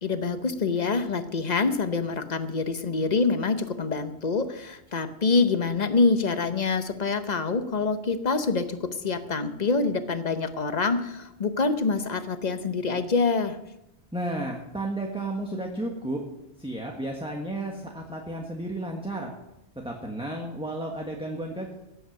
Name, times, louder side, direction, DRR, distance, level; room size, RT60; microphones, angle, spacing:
voice 1, 0.0-13.6, left 4 dB, 40° left, 10 dB, 1.0 m, -26 dB
voice 2, 14.1-16.2 16.6-19.3 19.8-21.7, right 1 dB, 5° right, 0 dB, 1.4 m, -32 dB
16.5 x 8.3 x 6.6 m, 0.89 s
omnidirectional pair, 1.2 m